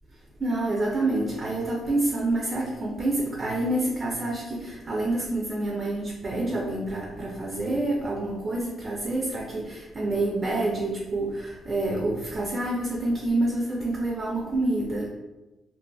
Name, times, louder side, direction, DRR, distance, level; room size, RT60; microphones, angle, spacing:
voice 1, 0.4-15.1, right 2 dB, 30° right, -2 dB, 0.4 m, -27 dB
2.5 x 2.4 x 2.2 m, 1.1 s
cardioid pair, 125°, 0 cm